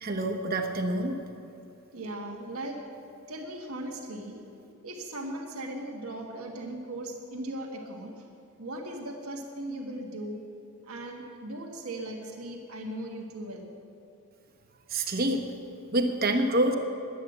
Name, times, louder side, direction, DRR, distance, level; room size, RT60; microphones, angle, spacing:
voice 1, 0.0-1.1 14.9-15.4 15.9-16.7, right 1 dB, 40° right, 4 dB, 1.1 m, -26 dB
voice 2, 1.9-2.8 3.3-4.4 4.8-8.1 8.6-10.4 10.8-13.7, right 1 dB, 80° right, 1 dB, 1.4 m, -38 dB
11.0 x 9.4 x 7.9 m, 2.7 s
head